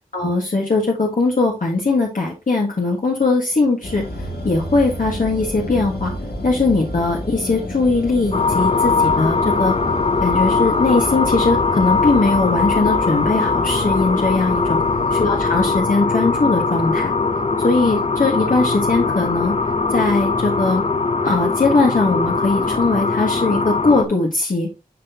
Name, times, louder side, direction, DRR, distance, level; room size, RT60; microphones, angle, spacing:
voice 1, 0.1-4.0 4.4-6.1 6.4-9.7 10.2-14.8 15.1-17.1 17.6-19.5 19.9-20.8 21.2-24.7, left 3 dB, 60° left, -1 dB, 1.5 m, -20 dB
sound 1, 3.8-15.8, left 1 dB, 90° left, 2.2 m, -30 dB
sound 2, 8.3-24.1, left 4 dB, 40° left, 0.7 m, -20 dB
11.0 x 4.0 x 2.8 m, 0.28 s
wide cardioid pair, 70°, 16 cm